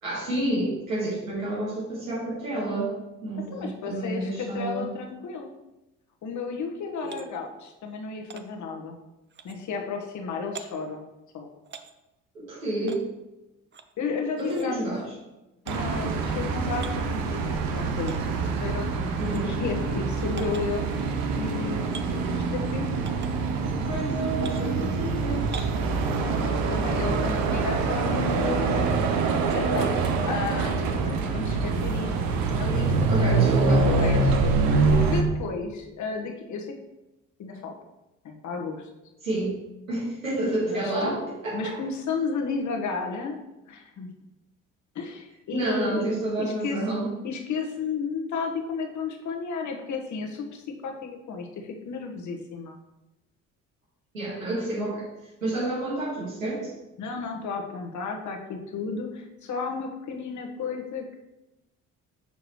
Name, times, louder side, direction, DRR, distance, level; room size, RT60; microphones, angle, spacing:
voice 1, 0.0-2.9 3.2-4.9 7.0-7.2 12.3-13.0 14.4-15.0 19.2-19.6 23.8-25.7 33.1-33.9 39.2-39.5 39.9-41.8 45.5-47.1 54.1-55.1 55.4-56.7, right 1 dB, 90° right, -8 dB, 1.9 m, -29 dB
voice 2, 3.5-5.5 6.2-9.0 9.4-11.0 11.3-11.5 14.0-14.8 15.6-19.0 19.3-20.9 21.3-22.9 23.6-24.0 26.2-29.1 29.5-32.1 32.6-34.4 34.9-36.7 37.4-37.7 38.2-38.9 40.7-41.2 41.5-43.4 43.7-44.1 44.9-46.1 46.4-46.8 47.2-52.8 57.0-61.2, left 5 dB, 45° left, 2 dB, 1.3 m, -33 dB
sound 1, 7.0-7.3 8.3-8.4 9.3-9.6 10.6-10.7 11.7-11.9 12.9-13.0 13.7-13.9 14.4-14.7 15.7-15.8 16.7-17.0 18.1-18.2 19.2-19.4 20.4-20.6 21.9-22.1 23.1-23.3 24.4-24.6 25.5-25.8, right 6 dB, 30° right, 0.6 m, -42 dB
sound 2, 15.7-35.2, right 4 dB, 60° right, 0.9 m, -25 dB
6.8 x 6.3 x 3.2 m, 0.98 s
figure-of-eight pair, 50°, 39 cm